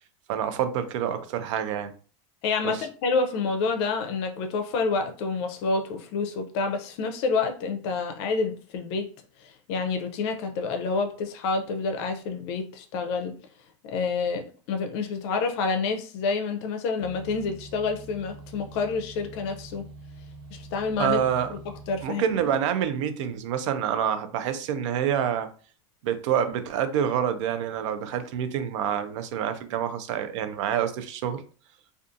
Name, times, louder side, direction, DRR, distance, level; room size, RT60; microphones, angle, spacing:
voice 1, 0.3-1.9 2.6-2.8 21.0-21.5 22.0-25.5 26.0-31.4, right 9 dB, 75° right, 0.5 m, -27 dB
voice 2, 2.4-9.1 9.4-13.3 13.8-19.9 20.5-21.2 21.5-21.6 21.9-22.4, left 4 dB, 60° left, 0.5 m, -28 dB
sound 1, 17.0-22.0, right 2 dB, 30° right, 0.6 m, -45 dB
2.4 x 2.4 x 2.6 m
supercardioid pair, 135°, 16 cm